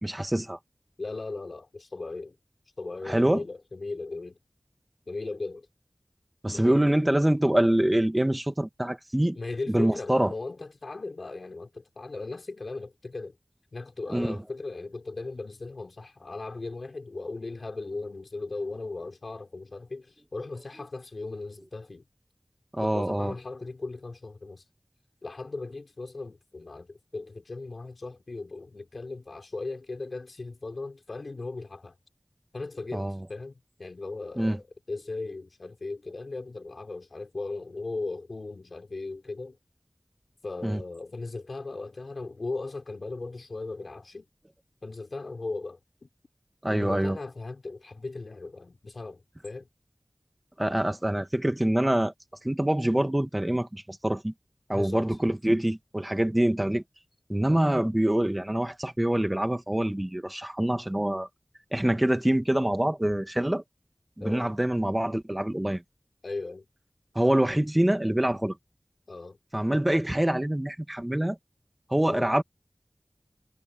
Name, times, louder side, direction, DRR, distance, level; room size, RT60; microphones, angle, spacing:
voice 1, 0.0-0.6 3.1-3.4 6.4-9.4 9.7-10.3 14.1-14.4 22.7-23.3 32.9-33.2 34.4-34.6 40.6-40.8 46.6-47.2 50.6-52.1 52.4-54.3 54.7-56.8 57.3-61.3 61.7-63.6 64.2-65.8 67.2-68.6 69.5-71.4 71.9-72.4, right 1 dB, 20° right, 2.1 m, -25 dB
voice 2, 1.0-2.4 2.8-4.4 5.1-5.7 6.5-7.0 9.3-13.4 13.7-22.0 22.8-24.6 25.2-32.0 32.5-39.6 40.4-44.3 44.8-46.1 46.7-49.7 54.7-55.1 64.2-64.5 66.2-66.7 69.1-69.4 72.0-72.3, left 3 dB, 85° left, 5.4 m, -37 dB
wide cardioid pair, 50°, 0 cm